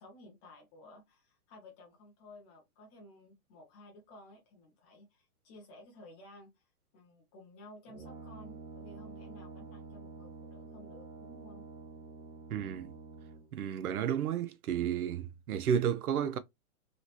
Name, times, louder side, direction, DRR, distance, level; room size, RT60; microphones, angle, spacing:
voice 1, 0.0-6.6 6.9-11.7, left 1 dB, 10° left, 0.4 m, -55 dB
Brass instrument, 7.9-13.6, right 4 dB, 20° right, 0.8 m, -48 dB
voice 2, 12.5-12.9 13.5-16.4, right 8 dB, 80° right, 0.8 m, -32 dB
3.1 x 3.0 x 2.8 m
hypercardioid pair, 140°, 44 cm